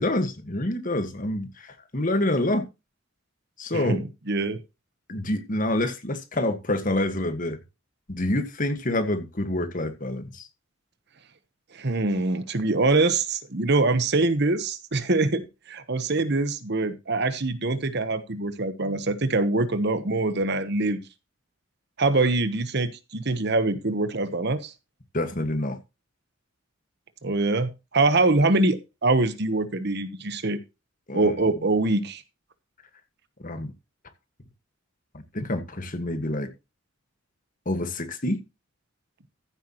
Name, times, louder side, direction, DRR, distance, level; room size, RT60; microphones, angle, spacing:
voice 1, 0.0-2.6 3.6-4.0 5.1-7.6 8.1-10.5 25.1-25.8 31.1-31.3 33.4-33.7 35.1-36.5 37.6-38.4, left 1 dB, 40° left, 1.7 m, -27 dB
voice 2, 4.3-4.6 11.7-21.0 22.0-24.7 27.2-30.6 31.1-32.2, right 2 dB, 55° right, 1.1 m, -24 dB
14.5 x 8.2 x 3.0 m
head